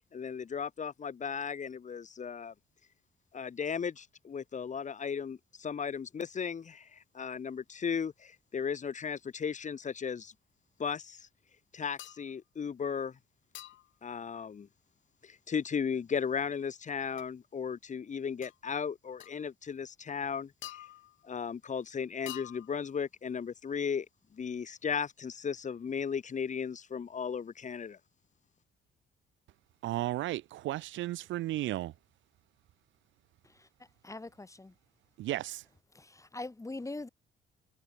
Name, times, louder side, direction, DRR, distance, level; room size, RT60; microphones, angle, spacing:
voice 1, 0.1-2.5 3.3-10.3 10.8-11.3 11.7-13.2 14.0-14.7 15.2-20.5 21.2-24.1 24.3-28.0, left 6 dB, 40° left, 1.2 m, -36 dB
sound 1, 12.0-12.3 13.5-14.0 17.2-17.3 18.4-18.6 19.2-19.4 20.6-21.3 22.3-22.9, left 14 dB, 75° left, 0.7 m, -47 dB
voice 2, 29.8-31.9 35.2-35.6, right 15 dB, 75° right, 0.5 m, -34 dB
voice 3, 34.0-34.7 35.9-37.1, left 2 dB, 15° left, 2.4 m, -42 dB
cardioid pair, 90°, 20 cm